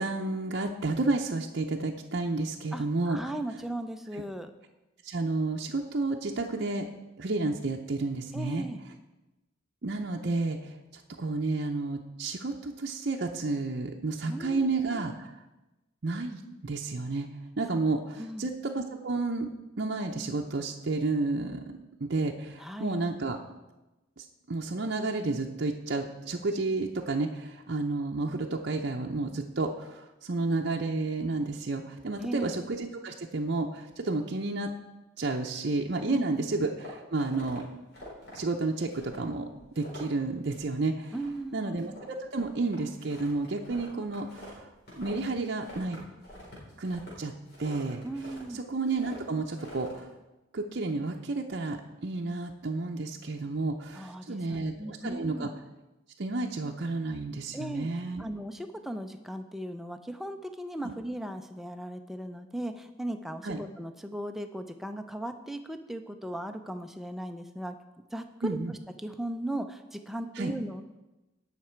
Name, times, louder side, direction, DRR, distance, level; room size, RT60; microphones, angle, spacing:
voice 1, 0.0-3.3 4.1-4.2 5.0-6.9 7.2-8.7 9.8-15.3 16.0-17.3 17.6-19.5 19.8-21.6 22.0-23.4 24.2-34.7 35.2-37.6 38.3-39.5 39.8-41.1 41.5-44.7 44.9-46.0 46.8-47.3 47.6-48.1 48.5-50.1 50.5-55.5 56.2-58.2 60.8-60.9 63.4-63.6 68.4-68.7 70.4-70.5, right 3 dB, 55° right, 1 dB, 0.6 m, -31 dB
voice 2, 2.7-4.5 8.3-8.8 14.3-15.0 18.2-18.5 22.6-23.0 32.2-32.5 36.1-36.5 41.1-41.7 48.0-48.6 53.9-55.5 57.5-57.9 58.2-67.8 68.1-68.5 69.0-70.8, right 1 dB, ahead, 6 dB, 0.5 m, -37 dB
sound 1, 36.6-37.6 37.9-38.4 38.9-39.3 39.5-40.2 40.5-40.8 41.0-41.5 41.8-45.3 45.6-48.5 48.8-49.2 49.5-50.0, left 1 dB, 50° left, 4.0 m, -47 dB
17.0 x 5.9 x 4.5 m, 1.0 s
head